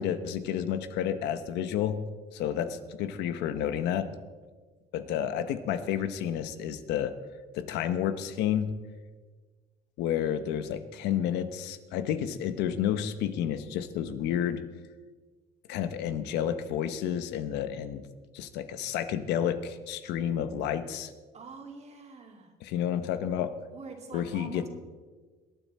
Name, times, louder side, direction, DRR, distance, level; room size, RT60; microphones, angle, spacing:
voice 1, 0.0-2.0 2.3-4.1 4.9-7.1 7.5-8.7 10.0-14.6 15.7-18.0 18.3-21.1 22.6-23.5 24.1-24.7, left 9 dB, 90° left, 10 dB, 1.0 m, -30 dB
voice 2, 5.1-5.5 21.3-22.5 23.7-24.7, right 4 dB, 40° right, 2 dB, 2.7 m, -45 dB
22.5 x 9.2 x 4.3 m, 1.4 s
cardioid pair, 110°, 17 cm